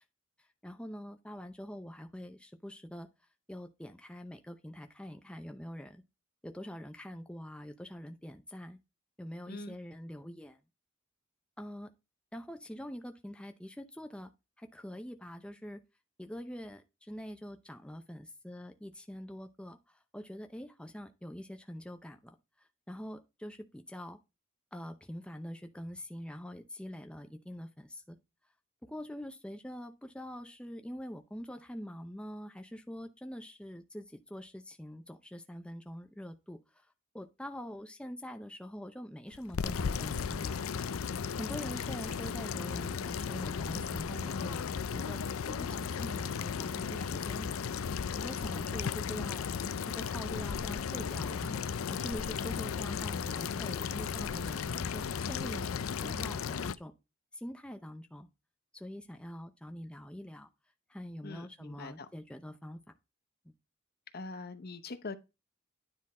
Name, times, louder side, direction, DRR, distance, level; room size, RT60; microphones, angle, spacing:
voice 1, 0.6-3.1 3.5-6.0 6.4-8.8 9.2-10.6 11.6-11.9 12.3-14.3 14.6-15.8 16.2-19.8 20.1-22.4 22.9-24.2 24.7-28.2 28.8-36.6 37.1-40.6 41.4-44.7 44.9-47.6 48.1-49.5 49.8-56.9 57.3-58.3 58.7-60.5 60.9-62.8 63.5-63.6, equal, 5° left, 0.6 m, -44 dB
sound 1, 39.3-56.7, left 6 dB, 90° left, 0.5 m, -35 dB
voice 2, 61.2-62.1 64.1-65.2, left 3 dB, 50° left, 0.8 m, -43 dB
9.8 x 3.9 x 4.2 m
head